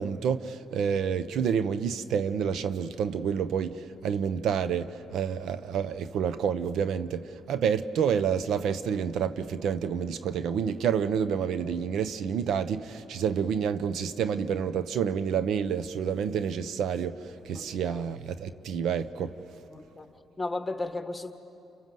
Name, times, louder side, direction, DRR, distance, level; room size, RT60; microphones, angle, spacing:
voice 1, 0.0-19.4, right 7 dB, 75° right, 0.8 m, -29 dB
voice 2, 17.5-18.0 19.7-20.1 20.4-21.3, left 2 dB, 15° left, 1.8 m, -34 dB
30.0 x 26.0 x 7.7 m
cardioid pair, 90°, 0 cm